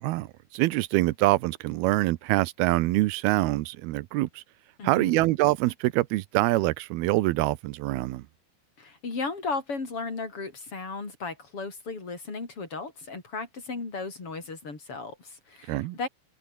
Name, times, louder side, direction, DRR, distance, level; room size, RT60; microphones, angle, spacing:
voice 1, 0.0-4.4 4.8-8.2 15.7-16.0, right 18 dB, 90° right, 2.7 m, -25 dB
voice 2, 4.8-5.2 8.8-16.1, left 4 dB, 35° left, 6.0 m, -35 dB
omnidirectional pair, 4.3 m